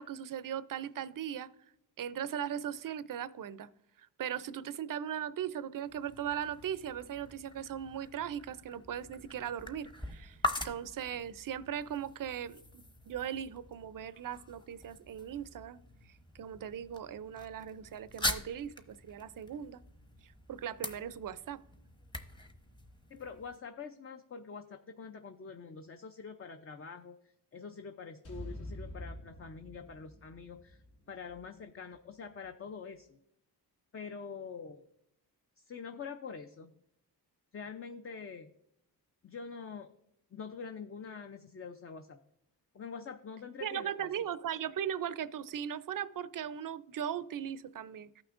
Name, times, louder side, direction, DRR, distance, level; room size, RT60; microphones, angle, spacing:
voice 1, 0.0-1.5 2.0-3.7 4.2-10.4 10.6-12.6 13.1-15.8 16.4-19.8 20.5-21.6 43.6-48.2, right 9 dB, 55° right, 0.5 m, -38 dB
sound 1, 5.8-23.6, left 2 dB, 10° left, 0.9 m, -43 dB
voice 2, 23.1-27.1 27.5-33.2 33.9-34.8 35.6-36.7 37.5-38.5 39.2-39.9 40.3-42.2 42.7-44.1, left 5 dB, 35° left, 0.6 m, -45 dB
sound 2, 28.2-32.5, left 1 dB, 75° left, 3.3 m, -47 dB
14.0 x 6.0 x 2.5 m
cardioid pair, 80°, 41 cm